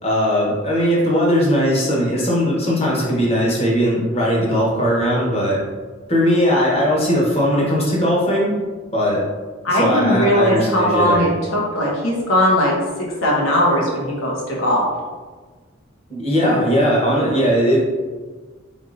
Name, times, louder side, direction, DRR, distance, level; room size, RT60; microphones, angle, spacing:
voice 1, 0.0-5.6 6.1-8.5 8.9-9.2 9.7-11.3 16.1-17.8, equal, 30° left, -5 dB, 1.0 m, -18 dB
voice 2, 9.6-14.9, equal, 85° left, -4 dB, 1.1 m, -19 dB
4.0 x 3.6 x 2.5 m, 1.4 s
head